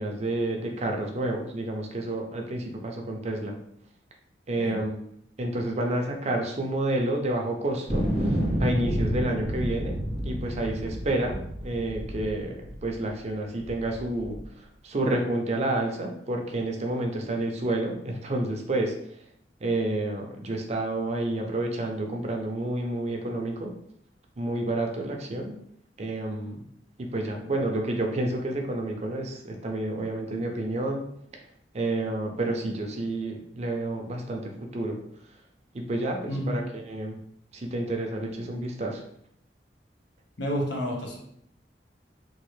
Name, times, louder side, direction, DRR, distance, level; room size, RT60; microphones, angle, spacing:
voice 1, 0.0-3.6 4.5-5.0 5.4-10.0 10.2-18.9 19.6-23.7 24.4-25.6 26.0-26.6 27.0-31.1 31.7-35.0 35.7-36.6 36.9-37.2 37.5-39.0, right 2 dB, 40° right, 2 dB, 0.5 m, -29 dB
voice 2, 4.6-4.9 36.3-36.6 40.4-41.2, equal, 80° left, 0 dB, 0.9 m, -30 dB
sound 1, 7.9-13.1 13.6-14.4, equal, 35° left, 1.4 m, -29 dB
3.1 x 2.5 x 3.2 m, 0.70 s
head